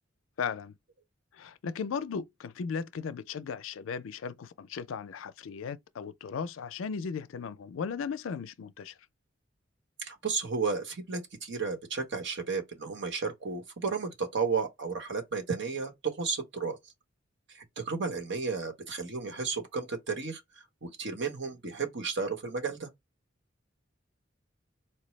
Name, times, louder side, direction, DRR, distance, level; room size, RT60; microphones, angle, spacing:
voice 1, 0.4-0.7 1.3-8.9, left 6 dB, 80° left, 0.4 m, -36 dB
voice 2, 10.0-16.8 17.5-20.4 20.8-22.9, right 5 dB, 65° right, 1.1 m, -33 dB
4.4 x 2.0 x 3.1 m
head